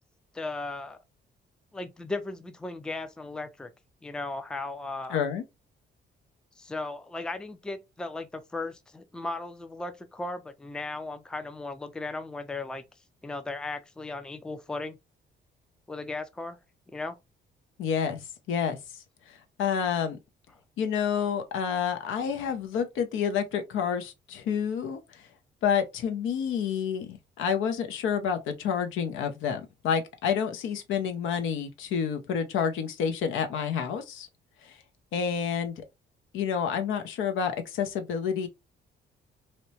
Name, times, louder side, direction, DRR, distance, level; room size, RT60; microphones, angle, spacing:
voice 1, 0.3-1.0 1.7-3.7 4.0-5.2 6.6-12.8 13.2-15.0 15.9-16.6 16.9-17.2, left 2 dB, 5° left, 0.3 m, -36 dB
voice 2, 5.1-5.4 17.8-20.2 20.8-25.2 25.6-34.3 34.6-34.7 35.1-35.7 36.3-38.5, left 7 dB, 80° left, 0.6 m, -29 dB
2.8 x 2.1 x 2.7 m
cardioid pair, 90°, 20 cm